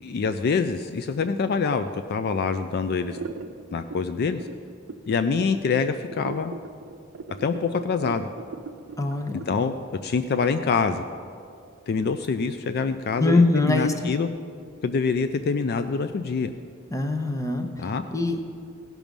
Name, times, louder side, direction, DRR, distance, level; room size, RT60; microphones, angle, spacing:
voice 1, 0.0-3.2 3.7-4.4 5.1-6.5 7.4-8.3 9.5-9.7 10.0-11.0 11.9-14.3 14.8-16.5 17.8-18.0, left 5 dB, 50° left, 9 dB, 0.4 m, -25 dB
sound 1, 3.0-10.8, right 4 dB, 80° right, 0.5 m, -39 dB
voice 2, 9.0-9.4 13.2-14.1 16.9-18.4, left 2 dB, 15° left, 5 dB, 0.7 m, -23 dB
16.5 x 6.1 x 5.3 m, 2.3 s
head